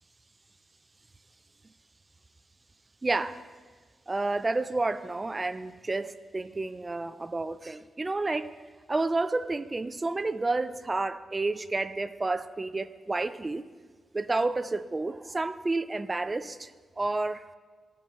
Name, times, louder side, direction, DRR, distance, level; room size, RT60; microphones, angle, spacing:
voice 1, 3.0-3.5 4.1-8.5 8.9-13.7 14.1-17.5, right 2 dB, 20° right, 0.4 m, -30 dB
15.5 x 5.8 x 3.1 m
cardioid pair, 115°, 0 cm